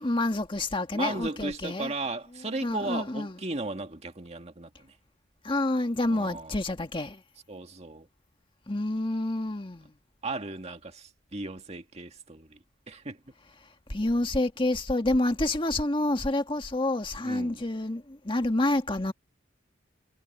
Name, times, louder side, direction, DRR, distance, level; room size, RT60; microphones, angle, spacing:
voice 1, 0.0-1.9 2.6-3.4 5.4-7.2 8.7-9.9 13.9-19.1, left 1 dB, 25° left, 1.7 m, -28 dB
voice 2, 0.9-4.9 6.1-6.5 7.5-8.1 10.2-12.6 12.9-13.2 17.2-17.6, right 2 dB, 35° right, 2.0 m, -36 dB
head